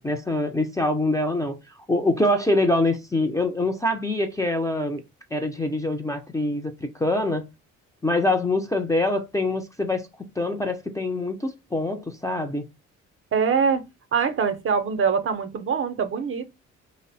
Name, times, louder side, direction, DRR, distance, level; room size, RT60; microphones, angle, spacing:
voice 1, 0.0-1.6 1.9-5.0 5.3-7.4 8.0-12.7, left 2 dB, 10° left, 0.4 m, -24 dB
voice 2, 13.3-13.8 14.1-16.5, right 6 dB, 45° right, 0.5 m, -23 dB
3.0 x 2.0 x 2.6 m
cardioid pair, 90°, 30 cm